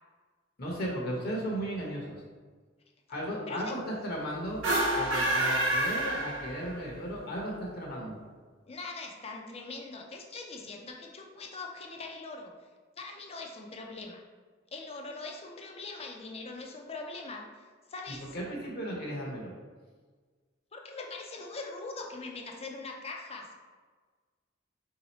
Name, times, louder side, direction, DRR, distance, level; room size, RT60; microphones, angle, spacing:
voice 1, 0.6-2.1 3.1-4.6 4.9-8.2 18.2-19.5, equal, 50° left, -2 dB, 0.9 m, -35 dB
sound 1, 4.5-6.9, right 1 dB, 80° right, 0.9 m, -28 dB
voice 2, 8.7-12.5 13.0-14.2 14.7-17.5 17.9-18.4 20.7-23.5, left 3 dB, 30° left, 2 dB, 0.5 m, -42 dB
3.7 x 2.8 x 4.2 m, 1.5 s
head